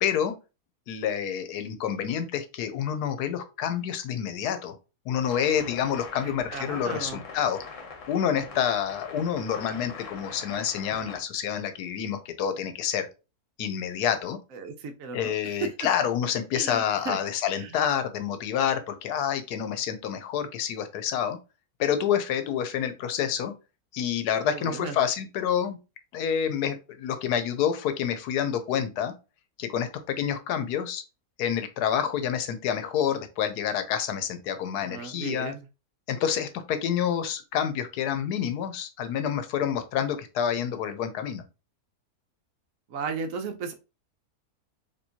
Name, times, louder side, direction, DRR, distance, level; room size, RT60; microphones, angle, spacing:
voice 1, 0.0-0.3 0.9-4.8 5.1-7.6 8.1-13.1 13.6-14.4 15.1-21.4 21.8-23.5 23.9-25.8 26.1-29.1 29.6-31.0 31.4-35.5 36.1-41.4, left 8 dB, 90° left, 9 dB, 1.2 m, -28 dB
sound 1, 5.2-11.2, left 4 dB, 60° left, 1.1 m, -43 dB
voice 2, 6.2-7.2 14.5-15.9 16.5-17.2 17.6-17.8 24.4-25.0 34.8-35.7 42.9-43.7, right 5 dB, 70° right, 6 dB, 1.0 m, -35 dB
4.4 x 2.9 x 2.8 m, 0.29 s
omnidirectional pair, 1.6 m